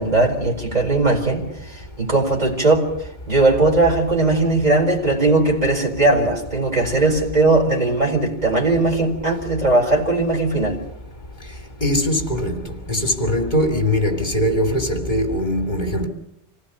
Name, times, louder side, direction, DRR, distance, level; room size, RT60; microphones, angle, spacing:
voice 1, 0.0-2.9 3.3-10.8, right 2 dB, 35° right, 4.6 m, -19 dB
voice 2, 11.8-12.6 12.9-16.1, left 1 dB, 40° left, 3.0 m, -21 dB
26.5 x 17.5 x 7.0 m
omnidirectional pair, 1.2 m